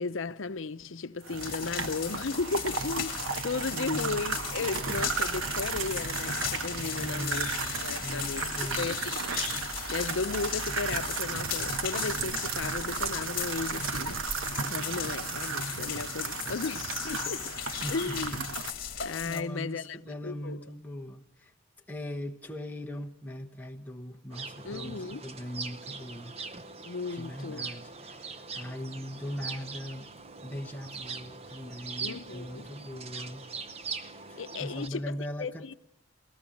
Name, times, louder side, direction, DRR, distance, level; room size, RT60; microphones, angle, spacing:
voice 1, 0.0-3.2 3.4-7.5 7.8-8.5 8.8-9.4 9.9-17.5 17.9-18.5 19.0-20.6 24.6-25.2 26.9-27.7 32.0-32.6 34.0-34.1 34.4-35.1 35.4-35.7, left 4 dB, 80° left, 0.7 m, -35 dB
sound 1, 1.2-18.7, right 5 dB, 90° right, 1.2 m, -34 dB
sound 2, 1.4-19.4, left 9 dB, 50° left, 2.2 m, -37 dB
voice 2, 3.7-4.2 7.0-7.7 8.0-8.9 17.8-18.4 19.2-21.5 21.9-26.4 27.1-30.1 30.4-33.5 34.3-35.7, equal, 10° left, 1.0 m, -40 dB
sound 3, 24.3-34.9, right 4 dB, 30° right, 0.8 m, -42 dB
28.0 x 17.0 x 6.4 m
head